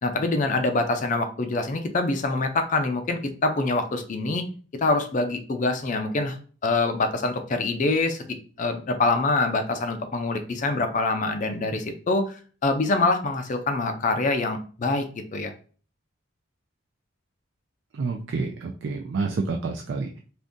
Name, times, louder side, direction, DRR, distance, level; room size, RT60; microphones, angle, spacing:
voice 1, 0.0-4.4 4.8-6.4 6.6-15.1 15.3-15.5, left 3 dB, 40° left, 6 dB, 0.4 m, -25 dB
voice 2, 17.9-20.2, right 4 dB, 60° right, 3 dB, 0.3 m, -29 dB
2.5 x 2.5 x 3.6 m, 0.40 s
head